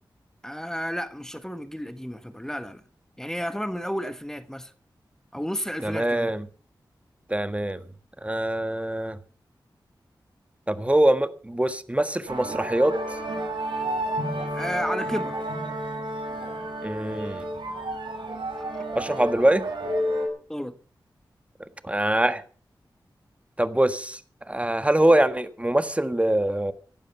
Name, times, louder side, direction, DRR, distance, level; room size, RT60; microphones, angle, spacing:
voice 1, 0.4-2.8 3.2-4.7 5.3-6.3 14.5-15.4 20.5-20.8, equal, 5° left, 1.3 m, -32 dB
voice 2, 5.8-6.5 7.3-7.8 8.2-9.2 10.7-12.9 16.8-17.4 18.9-19.6 21.8-22.4 23.6-24.2 24.5-26.7, right 1 dB, 15° right, 1.5 m, -23 dB
sound 1, 12.3-20.3, right 1 dB, 80° right, 5.0 m, -31 dB
16.5 x 11.5 x 5.6 m
cardioid pair, 45°, 8 cm